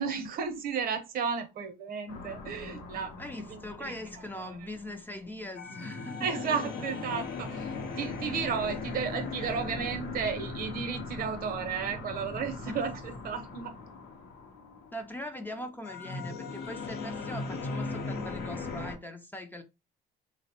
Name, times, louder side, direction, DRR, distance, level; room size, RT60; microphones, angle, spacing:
voice 1, 0.0-3.1 3.5-3.9 4.4-4.5 6.2-7.7 8.0-13.7, right 6 dB, 60° right, 0.6 m, -33 dB
sound 1, 2.1-19.0, left 3 dB, 80° left, 0.7 m, -39 dB
voice 2, 3.2-6.3 12.7-12.8 14.9-19.6, left 1 dB, 10° left, 0.3 m, -41 dB
3.0 x 2.0 x 2.7 m
cardioid pair, 110°, 17 cm